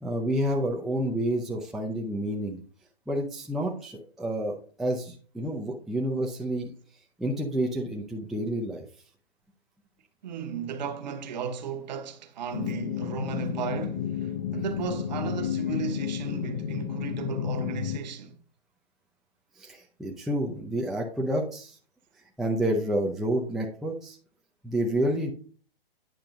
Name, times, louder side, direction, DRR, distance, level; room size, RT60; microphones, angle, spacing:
voice 1, 0.0-2.6 3.1-6.7 7.2-8.8 19.6-21.8 22.4-24.2 24.6-25.3, right 1 dB, ahead, 0.5 m, -29 dB
voice 2, 10.2-18.4, right 6 dB, 45° right, 1.1 m, -35 dB
sound 1, 12.5-18.0, left 9 dB, 35° left, 0.7 m, -31 dB
9.1 x 6.5 x 2.6 m
figure-of-eight pair, 125°, 30 cm